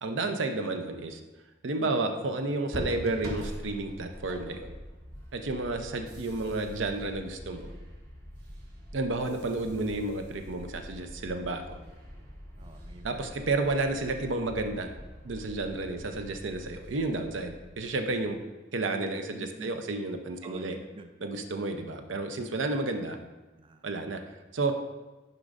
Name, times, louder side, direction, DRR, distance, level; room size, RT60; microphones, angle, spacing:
voice 1, 0.0-1.2 1.6-4.7 5.3-7.7 8.9-11.8 13.0-14.9 15.2-18.4 18.7-20.8 21.2-23.2 23.8-24.2 24.5-24.7, right 2 dB, 90° right, 6 dB, 0.6 m, -31 dB
sound 1, 2.7-18.4, equal, 55° right, 1.2 m, -44 dB
voice 2, 12.6-13.2 19.3-19.8 20.4-21.1 23.5-23.8, right 3 dB, 30° right, 6 dB, 0.4 m, -47 dB
9.6 x 5.1 x 2.5 m, 1.2 s
head